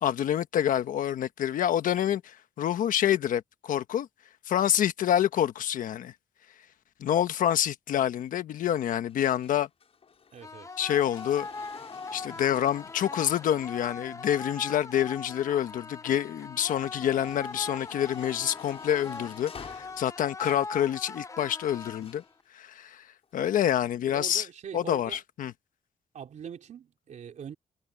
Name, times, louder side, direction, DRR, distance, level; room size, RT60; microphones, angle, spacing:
voice 1, 0.0-4.1 4.5-6.1 7.0-9.7 10.8-11.5 12.1-22.2 22.5-23.1 23.3-24.5 24.7-25.5, left 10 dB, 80° left, 1.2 m, -27 dB
sound 1, 8.6-15.8 16.2-20.8 21.8-22.3 23.2-23.3, left 6 dB, 45° left, 6.4 m, -50 dB
voice 2, 10.3-10.8 24.1-25.2 26.1-27.5, right 8 dB, 60° right, 3.6 m, -42 dB
sound 2, 10.4-22.4, left 4 dB, 20° left, 0.7 m, -41 dB
cardioid pair, 110°, 14 cm